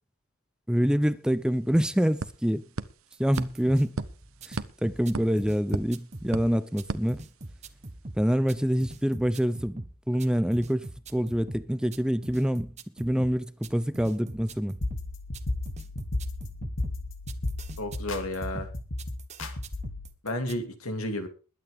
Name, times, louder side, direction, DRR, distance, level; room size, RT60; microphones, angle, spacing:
voice 1, 0.7-2.6 3.2-3.9 4.5-7.2 8.2-14.8, equal, 5° right, 0.5 m, -26 dB
sound 1, 1.1-1.2 1.4-7.8, right 3 dB, 75° right, 1.1 m, -39 dB
sound 2, 3.1-20.6, right 2 dB, 30° right, 1.2 m, -44 dB
sound 3, 14.8-20.1, left 2 dB, 65° left, 2.5 m, -34 dB
voice 2, 17.8-18.7 20.2-21.3, left 1 dB, 85° left, 2.9 m, -32 dB
21.5 x 9.4 x 3.6 m
head